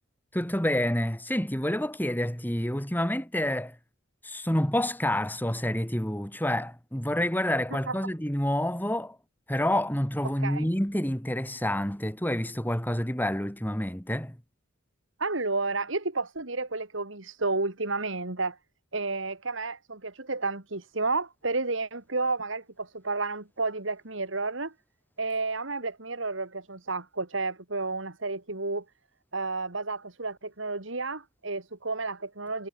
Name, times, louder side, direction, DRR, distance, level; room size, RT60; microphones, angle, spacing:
voice 1, 0.3-3.7 4.2-9.2 9.5-14.4, left 1 dB, 10° left, 3.2 m, -28 dB
voice 2, 15.2-18.6 18.9-24.7 25.2-28.8 29.3-32.7, right 3 dB, 70° right, 2.8 m, -31 dB
head